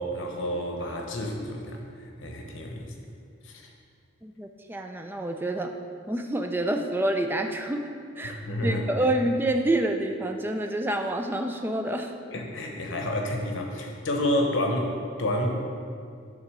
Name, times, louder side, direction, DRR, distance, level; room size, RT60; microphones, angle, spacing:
voice 1, 0.0-1.8 2.2-2.9 3.4-3.7 8.2-8.8 12.3-15.5, left 1 dB, 85° left, 2 dB, 1.0 m, -29 dB
voice 2, 4.2-5.7 6.1-7.8 8.2-12.1, right 1 dB, 10° right, 4 dB, 0.4 m, -27 dB
9.5 x 3.9 x 6.1 m, 2.3 s
head